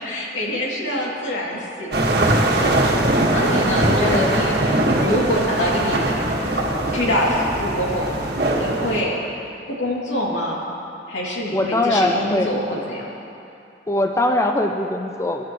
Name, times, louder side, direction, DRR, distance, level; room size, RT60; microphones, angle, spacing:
voice 1, 0.0-2.0 2.6-3.0 3.3-6.2 6.5-8.1 8.6-9.2 9.7-10.6 11.1-13.0, equal, 80° left, -4 dB, 2.8 m, -25 dB
sound 1, 1.9-9.0, right 1 dB, 60° right, 1.7 m, -21 dB
voice 2, 4.0-4.5 11.5-12.5 13.9-15.4, left 1 dB, 15° left, 4 dB, 0.5 m, -22 dB
24.0 x 12.0 x 3.1 m, 2.7 s
head